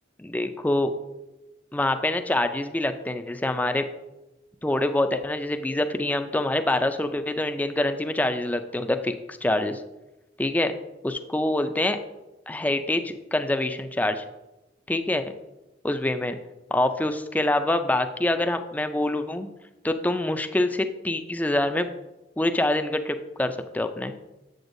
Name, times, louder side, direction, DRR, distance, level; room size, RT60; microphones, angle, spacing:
voice 1, 0.2-0.9 1.7-3.9 4.6-9.8 10.4-10.7 11.0-12.0 12.5-14.2 14.9-15.3 15.8-16.4 16.7-19.5 19.8-21.9 22.4-24.1, left 1 dB, 10° left, 8 dB, 0.3 m, -25 dB
7.9 x 7.8 x 2.6 m, 1.0 s
head